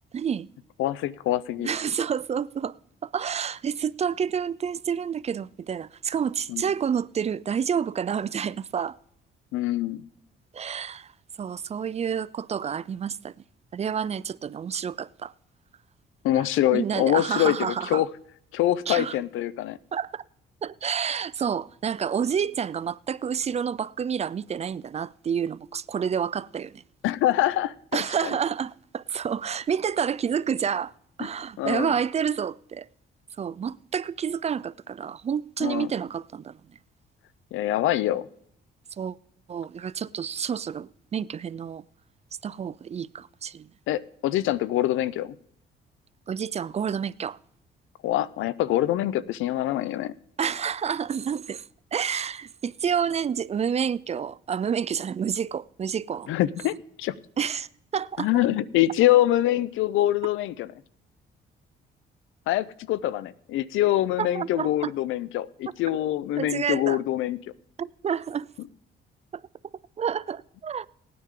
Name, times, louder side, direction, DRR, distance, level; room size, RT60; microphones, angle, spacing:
voice 1, 0.1-0.5 1.6-2.7 3.0-9.0 10.5-11.1 11.4-13.3 13.7-15.3 16.7-18.0 18.9-19.2 19.9-20.2 20.6-26.8 27.9-30.9 31.2-32.9 33.4-36.5 39.0-39.2 39.5-41.8 42.4-43.7 46.3-47.4 50.4-51.6 51.9-56.3 57.4-57.7 57.9-58.3 64.2-64.9 66.4-67.0 67.8-68.5 69.3-69.4 70.0-70.9, right 7 dB, 35° right, 0.4 m, -29 dB
voice 2, 0.8-1.7 6.5-6.6 9.5-10.0 16.2-18.1 18.5-19.8 27.0-28.4 31.6-31.9 35.6-35.9 37.5-38.3 43.9-45.3 48.0-50.1 56.3-57.2 58.2-60.7 62.5-67.4, left 13 dB, 85° left, 0.5 m, -25 dB
18.0 x 9.4 x 3.7 m
cardioid pair, 90°, 20 cm